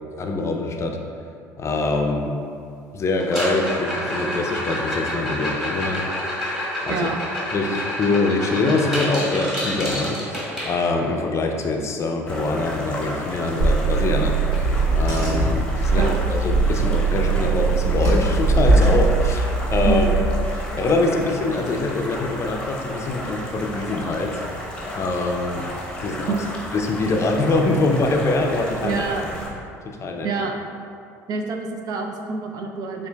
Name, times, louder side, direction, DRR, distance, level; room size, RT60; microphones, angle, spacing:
voice 1, 0.2-1.0 1.6-2.4 2.9-6.0 6.8-7.1 7.5-20.1 20.5-25.6 26.0-26.4 26.7-29.1 29.8-30.3, left 2 dB, 35° left, 2 dB, 0.5 m, -24 dB
sound 1, 3.2-11.2 13.4-13.5 13.8-14.1 14.5-14.6 15.2-15.3 17.2-17.3, equal, 5° right, 1.4 m, -28 dB
sound 2, 12.3-29.5, left 1 dB, 10° left, 0.9 m, -33 dB
Car / Engine, 13.6-20.2, right 3 dB, 80° right, 1.4 m, -20 dB
voice 2, 28.8-29.3 30.2-30.6 31.3-33.1, right 4 dB, 55° right, 3 dB, 0.4 m, -26 dB
6.8 x 2.5 x 2.2 m, 2.4 s
hypercardioid pair, 70°, 8 cm